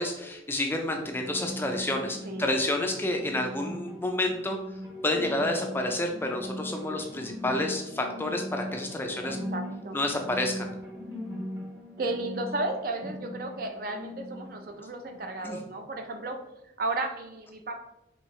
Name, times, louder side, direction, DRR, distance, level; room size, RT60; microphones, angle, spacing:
voice 1, 0.0-4.6 5.0-9.4 9.9-10.7 15.4-15.6, left 1 dB, 10° left, 3 dB, 0.4 m, -29 dB
sound 1, 0.8-15.8, equal, 10° right, 0.7 m, -40 dB
voice 2, 2.2-2.6 9.1-10.0 12.0-16.4 16.8-17.8, right 2 dB, 50° right, 5 dB, 0.5 m, -34 dB
4.5 x 3.4 x 3.1 m, 0.90 s
head